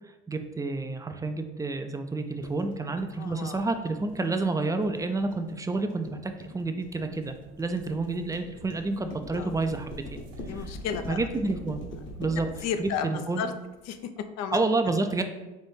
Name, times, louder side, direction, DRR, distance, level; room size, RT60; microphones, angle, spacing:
voice 1, 0.3-10.2 10.5-10.7 11.1-11.8 12.2-12.5 12.8-13.4 14.5-15.2, right 3 dB, 10° right, 6 dB, 0.3 m, -29 dB
sound 1, 2.4-14.0, left 1 dB, 40° left, 1.0 m, -44 dB
voice 2, 3.2-3.6 9.3-9.5 10.4-11.2 12.6-13.5 13.9-14.6, left 7 dB, 60° left, 9 dB, 0.5 m, -33 dB
sound 2, 6.9-12.9, right 2 dB, 55° right, 0.9 m, -47 dB
4.1 x 2.6 x 3.5 m, 1.1 s
supercardioid pair, 80°, 29 cm